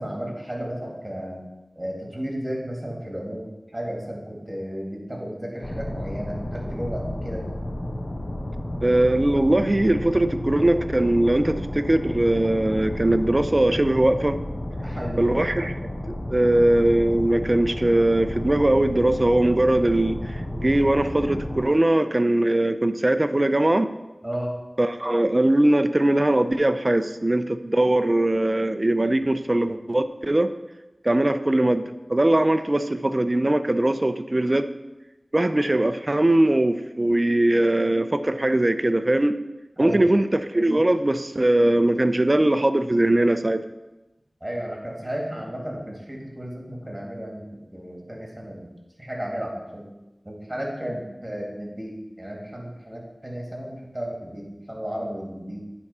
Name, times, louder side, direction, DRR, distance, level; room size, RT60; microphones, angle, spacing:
voice 1, 0.0-1.4 1.8-3.5 3.7-7.4 14.8-15.3 24.2-24.5 39.8-40.1 44.4-47.5 47.7-48.7 49.0-49.9 50.2-55.6, equal, 20° right, -1 dB, 2.2 m, -33 dB
sound 1, 5.6-21.6, left 1 dB, 45° left, 0.8 m, -32 dB
voice 2, 8.8-14.4 15.2-15.8 16.3-23.9 24.8-30.5 31.0-34.7 35.3-39.4 39.8-40.3 40.5-43.6, right 1 dB, 35° right, 10 dB, 0.5 m, -21 dB
9.3 x 3.6 x 5.5 m, 1.0 s
wide cardioid pair, 50°, 0 cm